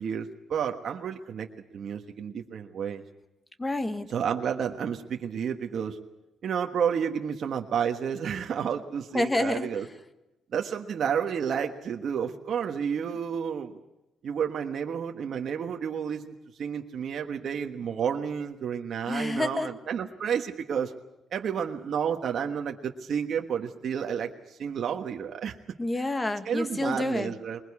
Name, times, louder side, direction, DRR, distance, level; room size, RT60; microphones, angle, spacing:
voice 1, 0.0-1.5 1.7-3.0 4.1-6.0 6.4-9.8 10.5-13.8 14.2-16.3 16.6-20.9 21.3-25.5 26.4-27.6, right 7 dB, 60° right, 3 dB, 1.4 m, -31 dB
voice 2, 3.6-4.1 9.1-9.7 19.1-19.7 25.8-27.3, left 2 dB, 20° left, 9 dB, 1.7 m, -28 dB
21.0 x 21.0 x 8.5 m, 0.95 s
cardioid pair, 90°, 0 cm